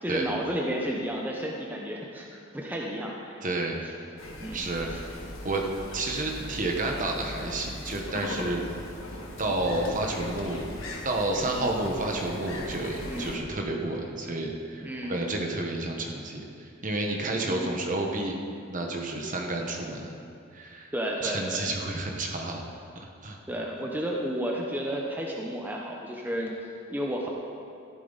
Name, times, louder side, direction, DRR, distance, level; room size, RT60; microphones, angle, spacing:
voice 1, 0.0-3.4 3.8-3.9 4.4-5.0 11.5-11.7 13.1-13.4 14.8-15.2 17.4-17.8 20.9-21.7 23.5-27.3, equal, 10° right, -1 dB, 0.8 m, -32 dB
voice 2, 3.4-3.9 4.5-4.9 5.4-5.6 5.9-8.7 9.1-10.7 11.0-18.3 18.7-20.1 20.5-20.9 21.2-22.6 22.9-23.4, right 2 dB, 40° right, 1 dB, 1.3 m, -30 dB
sound 1, 4.2-13.4, left 1 dB, 85° left, 1.7 m, -39 dB
13.5 x 11.5 x 4.1 m, 2.5 s
head